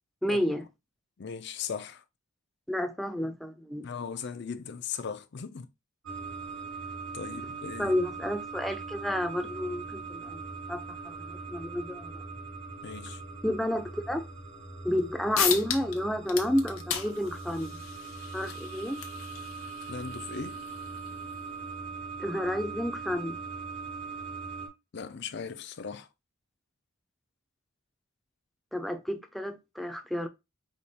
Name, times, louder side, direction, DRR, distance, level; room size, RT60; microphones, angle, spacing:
voice 1, 0.2-0.7 2.7-3.9 7.8-12.2 13.4-14.2 14.8-17.8 18.3-19.0 22.2-23.4 28.7-30.3, left 1 dB, ahead, 0.5 m, -31 dB
voice 2, 1.2-2.0 3.8-5.7 7.1-7.9 12.8-13.2 19.9-20.6 24.9-26.1, left 6 dB, 55° left, 0.5 m, -38 dB
sound 1, 6.1-24.7, right 4 dB, 75° right, 1.8 m, -41 dB
sound 2, 15.0-15.1 15.3-16.0 16.3-21.4, left 8 dB, 90° left, 0.9 m, -35 dB
5.0 x 2.4 x 4.2 m
head